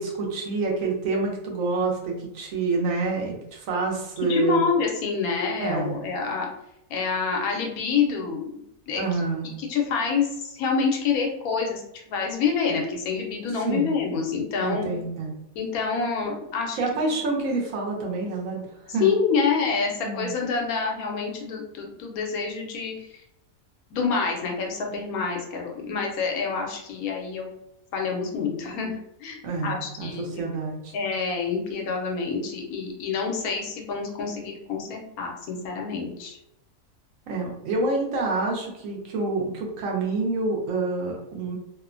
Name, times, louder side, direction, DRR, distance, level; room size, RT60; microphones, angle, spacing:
voice 1, 0.0-4.6 5.6-6.0 8.9-9.5 13.6-13.9 14.6-15.3 16.7-19.1 20.0-20.4 29.4-30.9 37.3-41.6, right 3 dB, 70° right, 0 dB, 1.0 m, -27 dB
voice 2, 4.3-6.5 6.9-9.2 9.6-14.9 15.6-16.8 17.1-17.2 19.0-23.1 23.9-27.5 27.9-30.4 30.9-36.4, left 5 dB, 85° left, 1 dB, 1.1 m, -27 dB
2.8 x 2.1 x 2.4 m, 0.82 s
omnidirectional pair, 1.5 m